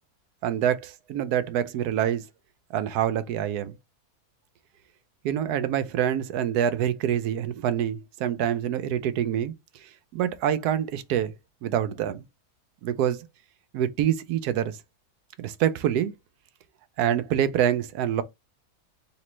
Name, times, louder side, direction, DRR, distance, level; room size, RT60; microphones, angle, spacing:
voice 1, 0.4-2.2 2.7-3.7 5.2-9.5 9.8-11.3 11.6-12.2 12.8-13.3 13.7-14.8 15.4-16.1 17.0-18.2, right 10 dB, 80° right, 1.1 m, -26 dB
3.2 x 3.1 x 3.0 m
omnidirectional pair, 1.7 m